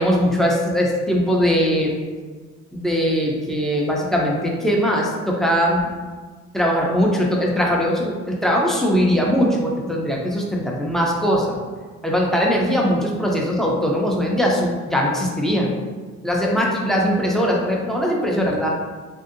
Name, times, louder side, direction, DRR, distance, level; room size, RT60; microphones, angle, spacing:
voice 1, 0.0-2.0 2.7-5.9 6.5-11.6 12.0-15.7 16.2-18.7, equal, ahead, -2 dB, 0.5 m, -20 dB
3.1 x 2.7 x 2.5 m, 1.4 s
cardioid pair, 90°, 30 cm